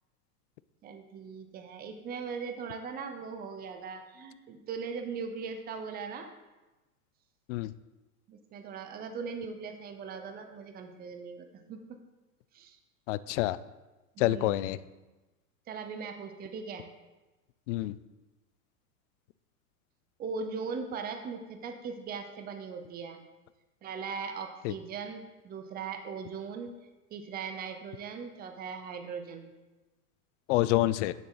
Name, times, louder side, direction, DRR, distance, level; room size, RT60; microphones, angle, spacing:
voice 1, 0.8-6.3 8.3-11.8 12.5-12.8 14.1-14.9 15.7-16.9 20.2-23.2 23.8-26.7 27.1-29.5, right 5 dB, 20° right, 6 dB, 0.7 m, -39 dB
voice 2, 13.1-13.6 14.2-14.8 17.7-18.0 24.6-24.7 30.5-31.1, left 16 dB, 55° left, 17 dB, 0.5 m, -27 dB
9.5 x 7.3 x 3.9 m, 1.1 s
supercardioid pair, 130°, 47 cm